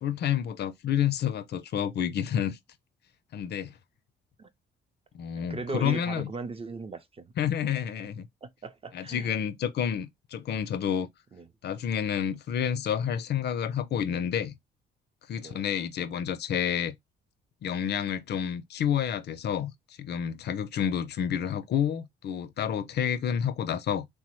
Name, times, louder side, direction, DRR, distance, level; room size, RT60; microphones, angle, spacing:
voice 1, 0.0-2.6 3.3-3.8 5.1-6.3 7.4-8.3 8.9-11.1 11.6-14.6 15.3-17.0 17.6-19.7 20.0-24.1, left 9 dB, 55° left, 0.4 m, -29 dB
voice 2, 5.5-7.3 8.4-9.4 11.3-11.5 15.4-15.6, right 3 dB, 30° right, 0.5 m, -37 dB
3.2 x 2.0 x 3.0 m
cardioid pair, 90°, 20 cm